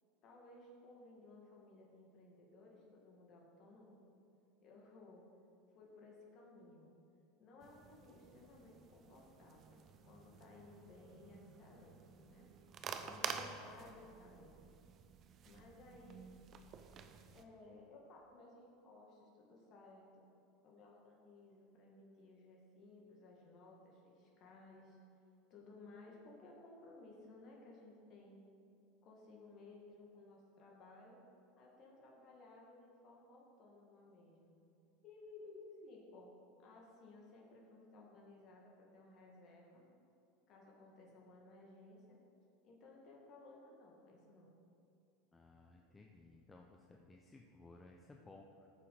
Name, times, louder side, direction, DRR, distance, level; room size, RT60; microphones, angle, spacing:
voice 1, 0.2-4.0 4.6-5.2 5.7-7.0 7.4-12.5 13.0-14.6 15.4-16.3 17.3-20.2 20.6-25.0 25.5-28.4 29.0-31.2 31.6-34.6 35.0-36.3 36.6-39.9 40.5-42.2 42.6-44.5, left 2 dB, 45° left, -2 dB, 2.1 m, -58 dB
sound 1, 7.6-17.4, right 7 dB, 40° right, 0.8 m, -50 dB
voice 2, 45.3-48.7, left 2 dB, 15° left, 1 dB, 0.9 m, -59 dB
14.0 x 7.0 x 5.1 m, 2.5 s
hypercardioid pair, 80°, 0 cm